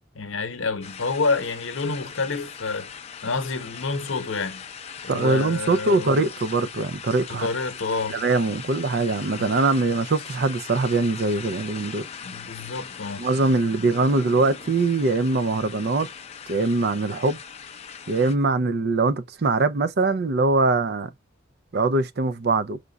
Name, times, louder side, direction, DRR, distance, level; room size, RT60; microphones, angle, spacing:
voice 1, 0.1-4.6 5.0-6.3 7.3-8.2 9.3-9.5 12.2-13.2, left 4 dB, 75° left, 0.9 m, -28 dB
sound 1, 0.8-18.3, left 7 dB, 30° left, 0.5 m, -40 dB
voice 2, 5.1-7.5 8.1-12.1 13.2-16.1 16.5-17.4 18.1-21.1 21.7-22.8, right 3 dB, 50° right, 0.4 m, -22 dB
5.1 x 2.3 x 3.8 m
head